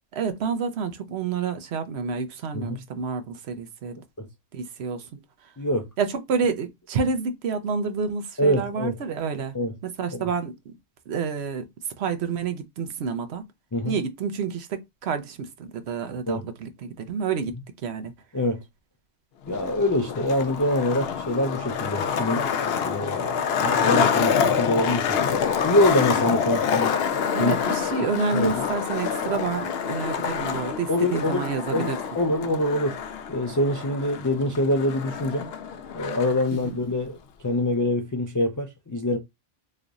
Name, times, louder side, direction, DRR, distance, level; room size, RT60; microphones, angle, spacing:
voice 1, 0.1-4.0 4.5-5.1 6.0-9.6 9.8-10.7 11.1-11.6 12.0-13.4 13.8-17.5 17.8-18.1 22.8-23.0 27.3-32.0 36.5-36.8, right 5 dB, 80° right, 0.9 m, -29 dB
voice 2, 5.6-5.9 8.4-8.9 9.5-9.7 10.1-10.2 13.7-14.0 16.3-16.4 18.3-18.6 19.5-22.5 22.9-26.9 27.4-27.6 28.3-28.6 30.9-31.5 31.7-33.0 33.3-35.5 35.9-37.2 37.4-39.2, left 1 dB, 25° left, 0.4 m, -25 dB
Skateboard, 19.5-36.5, left 7 dB, 75° left, 0.8 m, -27 dB
3.1 x 2.4 x 3.9 m
omnidirectional pair, 1.1 m